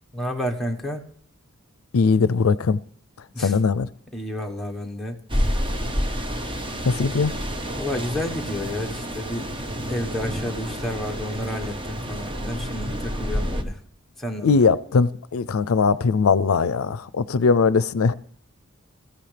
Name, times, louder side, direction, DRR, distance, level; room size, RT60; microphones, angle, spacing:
voice 1, 0.1-1.0 3.3-3.6 4.1-5.2 7.7-9.5 9.9-13.8 14.2-14.5, left 1 dB, ahead, 1.3 m, -30 dB
voice 2, 1.9-2.8 3.4-3.9 6.9-7.3 14.4-18.1, left 4 dB, 80° left, 0.5 m, -20 dB
sound 1, 5.3-13.6, equal, 25° right, 1.1 m, -29 dB
21.5 x 14.5 x 3.4 m
head